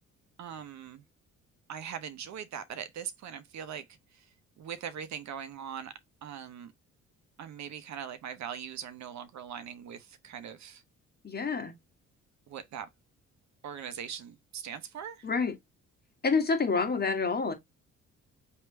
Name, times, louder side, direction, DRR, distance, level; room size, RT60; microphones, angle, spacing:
voice 1, 0.4-1.0 1.7-3.8 4.1-4.2 4.6-5.9 6.2-6.7 7.4-10.8 12.5-12.9 13.6-15.3, right 8 dB, 65° right, 0.9 m, -41 dB
voice 2, 11.2-11.7 15.2-15.6 16.2-17.5, left 4 dB, 30° left, 1.5 m, -28 dB
3.4 x 2.8 x 4.5 m
cardioid pair, 90°, 30 cm